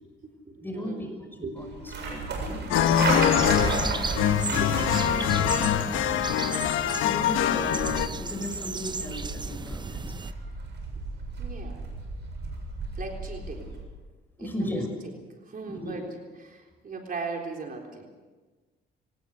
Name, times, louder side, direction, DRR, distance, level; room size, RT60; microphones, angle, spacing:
voice 1, 0.0-1.6 4.5-5.3 11.4-11.8 12.9-13.8 14.4-14.8 15.4-16.0 16.4-18.1, right 4 dB, 45° right, 1 dB, 3.8 m, -39 dB
voice 2, 0.6-1.1 1.4-2.7 3.2-3.8 4.2-4.8 5.2-5.6 6.9-10.2 14.4-14.9 15.8-16.0, left 1 dB, 10° left, 4 dB, 6.1 m, -36 dB
sound 1, 1.6-13.8, right 3 dB, 60° right, 7.2 m, -34 dB
sound 2, 2.7-8.1, left 10 dB, 90° left, 1.1 m, -24 dB
sound 3, 3.4-10.3, right 4 dB, 20° right, 0.7 m, -34 dB
24.0 x 19.0 x 6.6 m, 1.3 s
cardioid pair, 90°, 20 cm